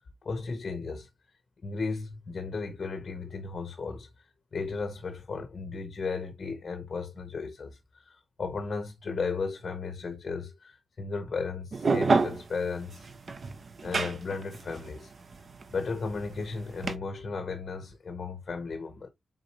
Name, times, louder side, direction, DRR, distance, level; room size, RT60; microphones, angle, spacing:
voice 1, 0.2-1.1 1.6-4.3 4.5-13.1 13.8-15.1 15.7-19.1, left 4 dB, 45° left, 0.8 m, -35 dB
sound 1, 11.7-16.9, right 4 dB, 45° right, 0.5 m, -29 dB
4.1 x 3.8 x 2.8 m
wide cardioid pair, 135°, 0 cm